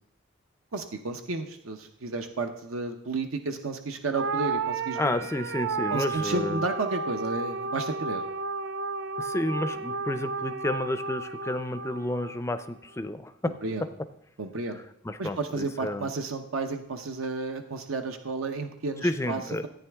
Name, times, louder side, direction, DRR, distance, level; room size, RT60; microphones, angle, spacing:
voice 1, 0.7-5.2 5.9-8.2 13.4-13.9 14.4-14.8 15.2-19.7, right 3 dB, 80° right, 5 dB, 0.8 m, -32 dB
sound 1, 4.1-12.7, right 4 dB, 55° right, 0.4 m, -33 dB
voice 2, 5.0-6.6 9.2-13.5 15.0-16.1 19.0-19.7, left 1 dB, 15° left, 11 dB, 0.4 m, -31 dB
14.0 x 9.1 x 3.5 m, 0.78 s
head